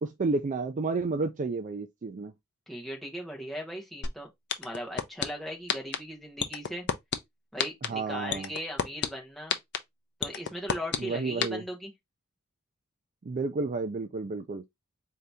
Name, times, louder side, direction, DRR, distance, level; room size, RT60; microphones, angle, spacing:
voice 1, 0.0-2.3 7.8-8.5 11.0-11.6 13.2-14.6, right 3 dB, 35° right, 0.4 m, -31 dB
voice 2, 2.7-4.3 4.6-6.9 7.5-9.6 10.2-11.9, equal, ahead, 1.1 m, -38 dB
sound 1, 4.0-4.1 4.5-5.2 5.7-6.0 6.4-7.2 7.6-7.9 8.3-9.1 9.5-9.8 10.2-11.0 11.4-11.5, left 7 dB, 50° left, 0.5 m, -27 dB
3.8 x 2.8 x 3.3 m
head